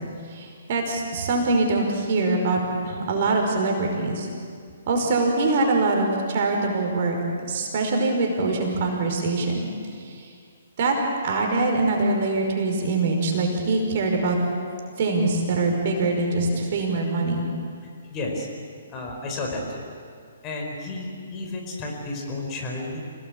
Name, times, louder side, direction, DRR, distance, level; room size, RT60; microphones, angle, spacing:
voice 1, 0.3-4.3 4.9-7.2 7.5-9.7 10.1-10.3 10.8-11.0 11.2-14.4 15.0-17.4, right 3 dB, 45° right, 1 dB, 5.3 m, -23 dB
voice 2, 18.1-18.5 18.9-19.9 20.4-23.0, left 2 dB, 25° left, 0 dB, 4.9 m, -32 dB
27.5 x 18.5 x 8.6 m, 2.2 s
figure-of-eight pair, 130°, 0 cm